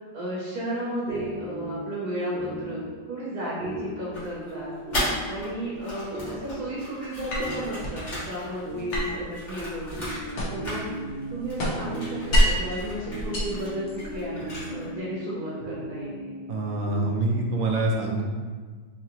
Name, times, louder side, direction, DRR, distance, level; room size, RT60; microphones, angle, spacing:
voice 1, 0.1-4.7 5.3-10.9 11.3-16.4, right 1 dB, 65° right, -7 dB, 1.2 m, -33 dB
sound 1, 1.1-17.8, right 1 dB, 45° right, 0.7 m, -38 dB
sound 2, 4.1-5.5 5.8-10.4 10.6-11.2 11.5-14.9, equal, 45° left, 1.5 m, -36 dB
sound 3, 7.3-8.0 8.9-10.8 11.1-12.7 13.2-14.3, equal, 65° left, 1.2 m, -26 dB
voice 2, 16.5-18.3, right 2 dB, 90° right, -1 dB, 1.4 m, -26 dB
3.7 x 2.8 x 2.9 m, 1.5 s
omnidirectional pair, 2.0 m